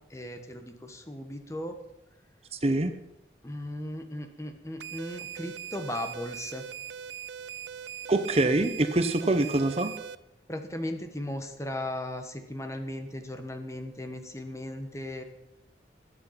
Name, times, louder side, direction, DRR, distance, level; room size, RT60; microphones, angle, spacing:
voice 1, 0.1-1.8 3.4-6.7 10.5-15.2, left 1 dB, 15° left, 6 dB, 1.3 m, -37 dB
voice 2, 2.5-2.9 8.1-9.9, right 2 dB, 35° right, 9 dB, 0.8 m, -25 dB
sound 1, 4.8-10.1, right 9 dB, 80° right, 0.5 m, -41 dB
20.5 x 8.1 x 5.8 m, 0.89 s
head